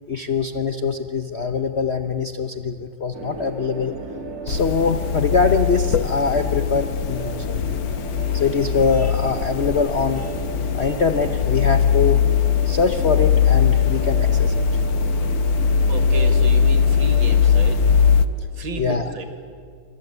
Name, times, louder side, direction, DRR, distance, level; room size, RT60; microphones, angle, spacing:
voice 1, 0.1-3.9 4.4-7.8 8.3-10.4 10.7-12.2 12.6-14.6 18.8-19.1, left 5 dB, 50° left, 7 dB, 0.8 m, -23 dB
sound 1, 3.1-18.2, right 3 dB, 45° right, 2.7 m, -34 dB
sound 2, 4.5-18.2, left 7 dB, 70° left, 1.7 m, -20 dB
voice 2, 15.9-17.8 18.5-19.3, right 3 dB, 70° right, 5 dB, 3.0 m, -32 dB
27.5 x 24.0 x 8.2 m, 2.2 s
omnidirectional pair, 2.2 m